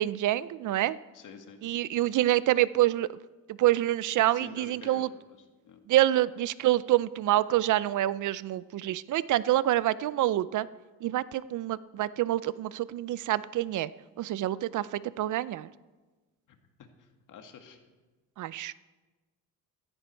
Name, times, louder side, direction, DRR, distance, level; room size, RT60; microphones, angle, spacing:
voice 1, 0.0-1.0 1.6-3.2 3.6-5.1 5.9-10.7 11.0-13.9 14.2-15.7 18.4-18.7, right 14 dB, 55° right, 18 dB, 0.5 m, -27 dB
voice 2, 1.1-1.6 4.3-5.1 5.6-5.8 16.8-17.8, left 6 dB, 55° left, 5 dB, 2.0 m, -48 dB
15.5 x 14.0 x 4.5 m, 1.2 s
cardioid pair, 120°, 36 cm